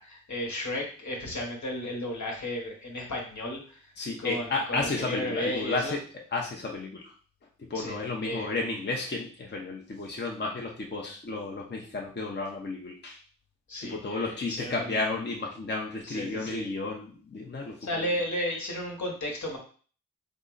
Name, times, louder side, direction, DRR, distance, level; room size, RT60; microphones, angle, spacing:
voice 1, 0.0-3.8 4.2-6.0 7.7-8.5 13.7-14.9 16.0-16.6 17.8-19.6, left 1 dB, 65° left, 0 dB, 1.2 m, -34 dB
voice 2, 4.0-6.0 6.3-7.1 7.6-13.2 13.8-18.2, left 3 dB, 35° left, -1 dB, 0.7 m, -32 dB
3.7 x 2.1 x 3.8 m, 0.42 s
cardioid pair, 45°, 31 cm